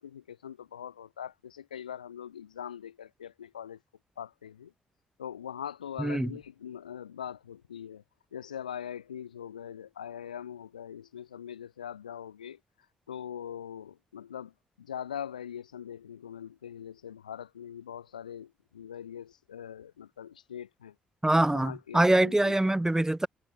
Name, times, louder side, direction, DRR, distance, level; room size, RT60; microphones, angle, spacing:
voice 1, 0.0-3.8 4.2-4.7 5.2-8.0 8.3-12.6 13.1-20.9 21.5-22.5, left 9 dB, 85° left, 4.3 m, -42 dB
voice 2, 6.0-6.3 21.2-23.3, right 1 dB, 10° right, 2.8 m, -24 dB
figure-of-eight pair, 40°, 4 cm